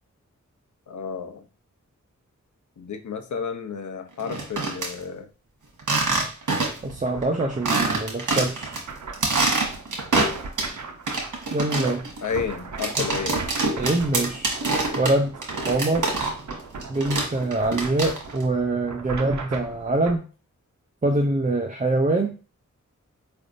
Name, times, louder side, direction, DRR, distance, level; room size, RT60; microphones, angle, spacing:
voice 1, 0.9-1.4 2.8-5.3 12.2-13.4, left 6 dB, 75° left, 6 dB, 0.7 m, -31 dB
sound 1, 4.2-4.9 5.8-6.9 7.2-7.3 7.6-8.8 9.1-10.7 11.1-16.6 16.8-18.4, right 3 dB, 85° right, 1.3 m, -25 dB
voice 2, 6.8-8.7 11.5-12.1 13.0-13.1 13.8-14.5 15.0-15.4 15.7-16.1 16.9-20.3 21.0-22.3, right 2 dB, 25° right, 3 dB, 0.5 m, -24 dB
sound 2, 6.8-20.2, right 4 dB, 65° right, 0.7 m, -39 dB
4.9 x 3.4 x 2.6 m, 0.35 s
wide cardioid pair, 100°, 30 cm